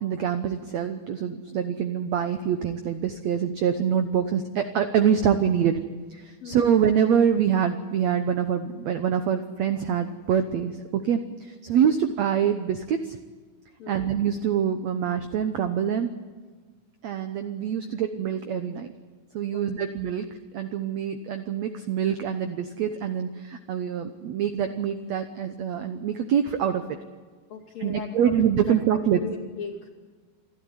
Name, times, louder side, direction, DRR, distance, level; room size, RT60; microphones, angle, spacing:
voice 1, 0.0-5.8 6.1-13.2 13.9-16.1 17.0-18.9 19.3-20.3 20.5-26.8 27.8-29.2, right 8 dB, 80° right, 8 dB, 1.6 m, -25 dB
voice 2, 13.8-14.1 17.9-18.0 19.5-19.9 27.5-28.1 28.7-29.9, left 7 dB, 45° left, 3 dB, 3.2 m, -39 dB
27.5 x 12.5 x 9.7 m, 1.5 s
omnidirectional pair, 4.5 m